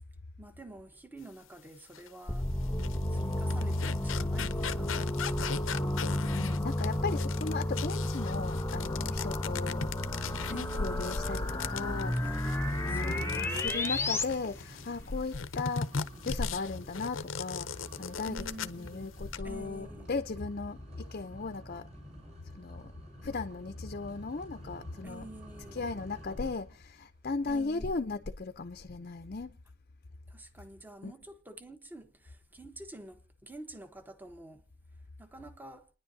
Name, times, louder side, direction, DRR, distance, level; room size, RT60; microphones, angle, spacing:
voice 1, 0.4-2.5 3.1-5.2 10.5-11.1 12.2-12.4 12.9-13.8 18.3-19.1 19.4-20.1 25.0-25.9 27.5-27.9 30.3-34.6 35.2-35.9, right 1 dB, 10° right, 1.1 m, -48 dB
sound 1, 1.9-2.1 2.6-14.9 15.3-18.9 19.2-19.4, left 6 dB, 85° left, 0.7 m, -39 dB
sound 2, 2.3-14.2, left 1 dB, 15° left, 0.9 m, -32 dB
voice 2, 6.3-9.9 10.5-12.2 12.5-15.9 16.3-21.9 22.5-22.9 23.2-25.2 25.7-29.6 31.0-31.1, left 3 dB, 45° left, 0.6 m, -36 dB
sound 3, 10.6-26.8, equal, 35° right, 7.9 m, -50 dB
29.5 x 10.5 x 2.7 m
head